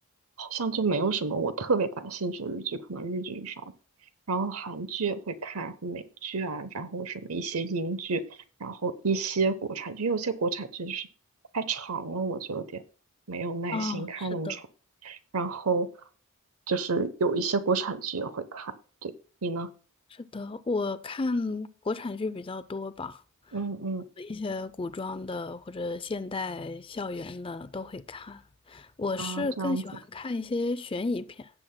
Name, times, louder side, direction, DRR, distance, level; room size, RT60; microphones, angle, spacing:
voice 1, 0.4-3.7 4.3-8.2 8.6-11.1 11.5-12.8 13.3-14.6 15.0-15.9 16.7-18.7 19.0-19.1 19.4-19.7 23.5-24.0 29.2-29.8, right 4 dB, 80° right, 0.9 m, -30 dB
voice 2, 13.7-14.6 20.1-23.2 23.5-23.6 24.2-28.4 28.7-31.5, left 3 dB, 25° left, 0.4 m, -33 dB
17.0 x 7.5 x 2.2 m
head